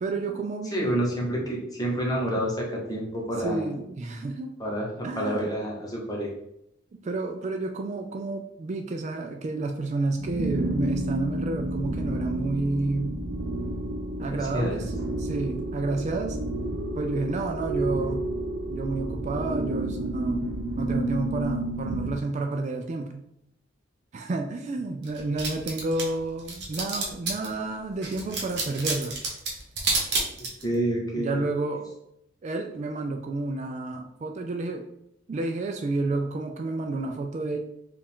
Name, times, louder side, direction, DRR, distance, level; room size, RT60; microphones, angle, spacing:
voice 1, 0.0-0.9 3.4-4.5 5.0-5.5 6.9-13.2 14.2-14.9 15.2-16.4 17.0-18.3 18.7-20.5 20.8-23.2 24.1-29.2 31.2-31.8 32.4-34.8 35.3-37.6, right 2 dB, 35° right, 4 dB, 0.3 m, -30 dB
voice 2, 0.7-3.7 4.6-6.3 14.2-14.9 30.6-31.4, right 1 dB, 20° left, -2 dB, 1.0 m, -28 dB
sound 1, 10.2-22.2, right 1 dB, 90° right, 0.6 m, -30 dB
sound 2, 25.0-27.5 28.0-30.7, right 3 dB, 60° right, 1.1 m, -29 dB
4.7 x 2.4 x 3.5 m, 0.78 s
head